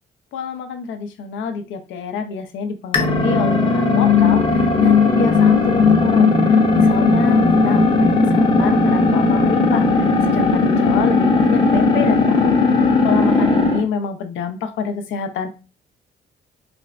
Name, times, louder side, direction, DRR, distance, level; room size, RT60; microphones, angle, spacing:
voice 1, 0.3-15.5, left 5 dB, 75° left, 7 dB, 0.5 m, -26 dB
sound 1, 2.9-13.8, left 4 dB, 25° left, 0.6 m, -16 dB
3.3 x 2.1 x 2.4 m, 0.33 s
cardioid pair, 90°, 20 cm